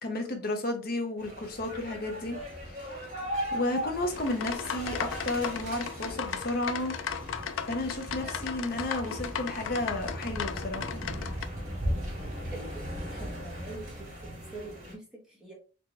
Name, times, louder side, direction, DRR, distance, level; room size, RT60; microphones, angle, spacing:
voice 1, 0.0-2.9 3.5-6.9 7.7-11.1, left 2 dB, 50° left, 0.9 m, -33 dB
sound 1, 1.2-14.9, equal, 40° right, 2.1 m, -38 dB
sound 2, 4.1-11.4, left 7 dB, 80° left, 0.4 m, -36 dB
voice 2, 12.2-14.1 14.5-15.0 15.4-15.5, right 2 dB, 5° right, 1.5 m, -44 dB
4.3 x 2.9 x 3.4 m
head